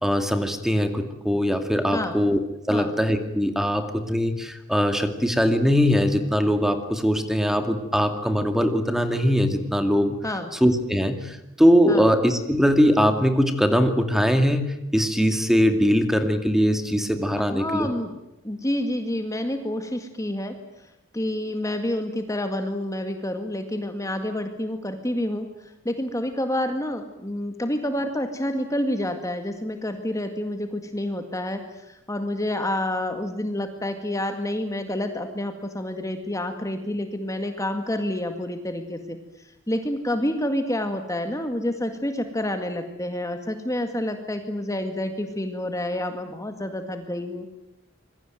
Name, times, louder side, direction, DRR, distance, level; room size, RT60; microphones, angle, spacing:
voice 1, 0.0-2.4 2.7-10.2 10.6-17.9, equal, ahead, 7 dB, 2.3 m, -21 dB
voice 2, 17.5-18.2 18.4-20.6 21.1-39.2 39.7-47.5, left 1 dB, 15° left, 6 dB, 2.0 m, -28 dB
26.0 x 22.0 x 9.2 m, 0.88 s
head